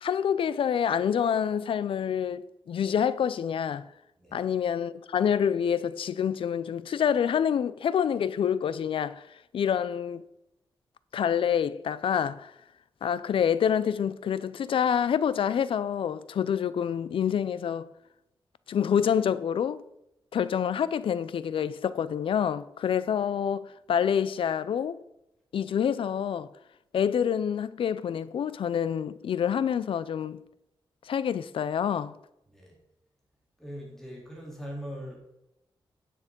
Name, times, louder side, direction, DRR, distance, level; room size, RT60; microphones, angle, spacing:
voice 1, 0.0-3.8 4.3-9.2 9.5-10.2 11.1-12.5 13.0-17.9 18.7-19.8 20.3-25.0 25.5-26.5 26.9-30.4 31.1-32.2, left 8 dB, 85° left, 0.5 m, -27 dB
voice 2, 33.6-35.2, equal, 5° left, 3.6 m, -41 dB
9.9 x 6.6 x 5.3 m
wide cardioid pair, 125°, 9 cm